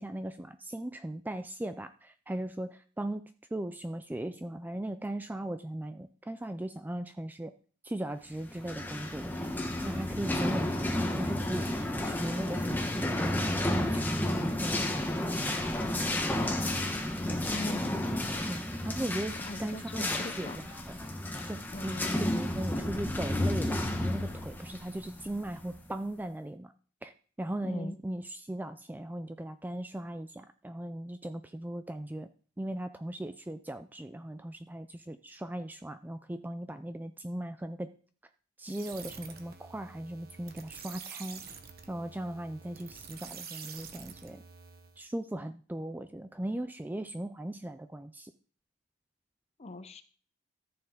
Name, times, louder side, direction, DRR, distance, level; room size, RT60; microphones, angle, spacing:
voice 1, 0.0-3.2 3.5-7.5 7.8-9.5 9.8-16.7 18.5-20.8 21.4-26.7 27.0-27.1 27.4-32.3 32.6-37.9 38.6-41.4 41.9-44.4 45.0-48.3, right 1 dB, 10° right, 10 dB, 0.3 m, -38 dB
sound 1, 8.5-25.9, left 1 dB, 10° left, 1.2 m, -32 dB
voice 2, 17.2-18.0 19.4-20.6 21.7-22.3 27.6-28.0 49.6-50.0, left 2 dB, 30° left, 11 dB, 0.7 m, -40 dB
sound 2, 38.7-45.0, right 6 dB, 45° right, 1.1 m, -47 dB
14.0 x 6.9 x 3.8 m, 0.42 s
head